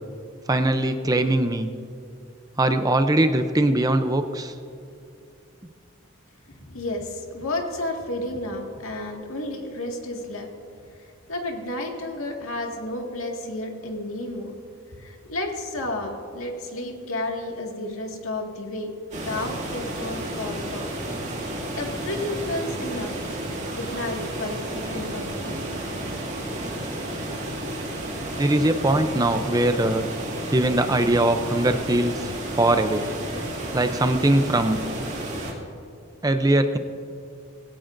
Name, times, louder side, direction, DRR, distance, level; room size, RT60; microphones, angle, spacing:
voice 1, 0.5-1.7 2.6-4.5 28.4-30.1 30.5-33.1 33.7-34.8 36.2-36.8, right 1 dB, 20° right, 8 dB, 0.5 m, -21 dB
voice 2, 6.5-10.5 11.0-14.5 15.0-20.9 21.5-23.1 23.8-25.8, left 1 dB, 85° left, 1 dB, 2.0 m, -32 dB
sound 1, 19.1-35.5, right 1 dB, 35° right, 2.4 m, -32 dB
19.5 x 16.5 x 2.6 m, 2.6 s
head